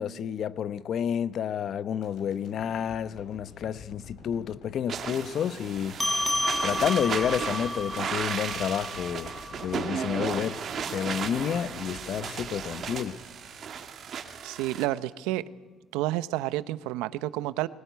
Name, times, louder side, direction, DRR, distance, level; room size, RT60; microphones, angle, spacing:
voice 1, 0.0-6.0 6.6-9.3 9.6-10.6 10.9-13.2, left 8 dB, 55° left, 0.9 m, -30 dB
sound 1, 2.0-14.2 14.6-14.7, left 4 dB, 75° left, 6.5 m, -49 dB
sound 2, 4.9-14.8, right 7 dB, 50° right, 2.4 m, -35 dB
sound 3, 6.0-10.8, left 1 dB, 10° left, 1.2 m, -32 dB
voice 2, 14.4-15.4 15.9-17.7, right 15 dB, 90° right, 0.8 m, -30 dB
20.5 x 18.5 x 9.4 m
supercardioid pair, 90°, 0 cm